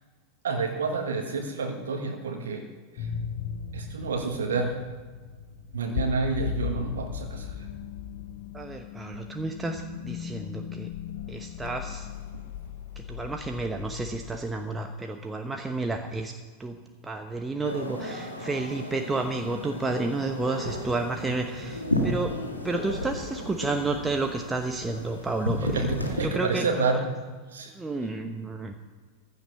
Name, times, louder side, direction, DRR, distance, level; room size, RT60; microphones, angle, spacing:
voice 1, 0.4-3.1 3.7-4.9 5.7-7.7 11.1-11.2 12.3-12.4 21.9-22.1 25.6-27.7, right 4 dB, 65° right, 3 dB, 1.4 m, -30 dB
sound 1, 3.0-14.4, left 8 dB, 50° left, 1.1 m, -37 dB
voice 2, 8.5-10.9 11.3-12.1 13.0-16.3 16.6-16.8 17.0-22.3 22.6-25.9 26.2-26.6 27.7-28.7, right 3 dB, 10° right, 4 dB, 1.0 m, -31 dB
sound 2, 17.6-26.2, left 1 dB, 85° left, 2.0 m, -33 dB
15.5 x 11.5 x 5.6 m, 1.4 s
figure-of-eight pair, 90°, 0 cm